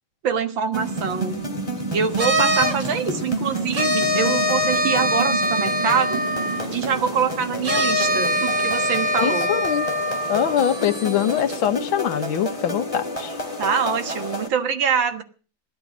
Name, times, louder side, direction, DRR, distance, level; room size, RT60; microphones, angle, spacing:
voice 1, 0.2-1.4 1.9-6.2 6.7-9.5 13.6-15.2, right 6 dB, 75° right, 8 dB, 2.2 m, -24 dB
sound 1, 0.7-14.5, right 1 dB, 15° left, 2.9 m, -30 dB
sound 2, 2.2-2.9 3.7-6.8 7.6-11.6, equal, 40° right, 2.2 m, -23 dB
voice 2, 9.2-9.9 10.3-13.4, left 9 dB, 90° left, 10 dB, 1.8 m, -23 dB
16.5 x 11.5 x 6.1 m, 0.39 s
omnidirectional pair, 2.2 m